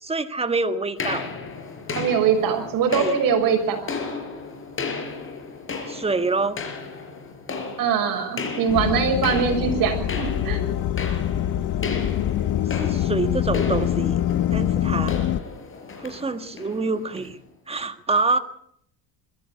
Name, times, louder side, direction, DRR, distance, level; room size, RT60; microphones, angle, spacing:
voice 1, 0.0-1.3 2.9-3.2 5.9-6.6 12.6-14.2 14.5-15.2 16.0-17.4 17.7-18.4, right 3 dB, 15° right, 9 dB, 1.7 m, -26 dB
sound 1, 1.0-17.3, left 4 dB, 30° left, 4.7 m, -34 dB
voice 2, 1.9-3.8 7.8-10.6, right 7 dB, 55° right, 4 dB, 6.7 m, -22 dB
sound 2, 8.7-15.4, left 11 dB, 50° left, 1.2 m, -24 dB
21.5 x 15.0 x 8.7 m, 0.68 s
cardioid pair, 125°, 41 cm